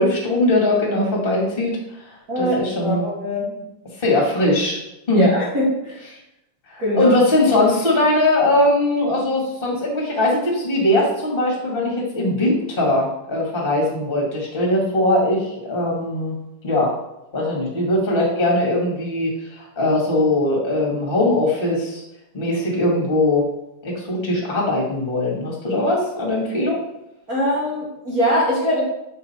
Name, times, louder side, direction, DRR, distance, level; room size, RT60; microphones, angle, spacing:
voice 1, 0.0-1.7 2.4-3.0 4.0-4.8 5.1-5.3 6.7-16.3 16.6-16.9 17.3-22.0 22.3-23.4 23.8-26.8, left 1 dB, 20° left, -2 dB, 1.7 m, -20 dB
voice 2, 2.3-3.5 5.1-6.0 6.8-7.1 27.3-28.8, equal, 45° right, -5 dB, 1.2 m, -22 dB
6.9 x 6.1 x 4.4 m, 0.88 s
omnidirectional pair, 3.7 m